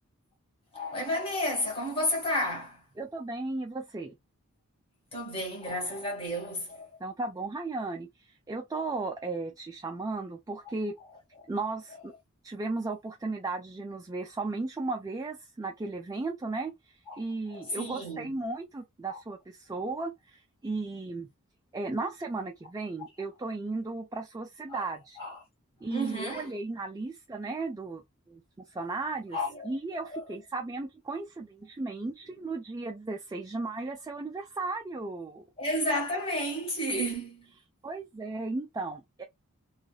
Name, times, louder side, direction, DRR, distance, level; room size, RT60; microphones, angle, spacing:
voice 1, 0.7-2.8 5.1-7.0 17.1-17.2 17.5-18.4 19.1-19.2 24.7-24.8 25.2-25.4 25.9-26.6 29.3-30.3 35.6-37.4, equal, 25° left, 1.5 m, -32 dB
voice 2, 3.0-4.1 7.0-10.9 11.5-12.1 12.4-21.3 21.7-25.2 25.8-28.0 28.3-29.4 29.6-35.4 36.9-37.0 37.8-39.2, right 3 dB, 15° right, 0.3 m, -35 dB
3.0 x 2.4 x 2.3 m
head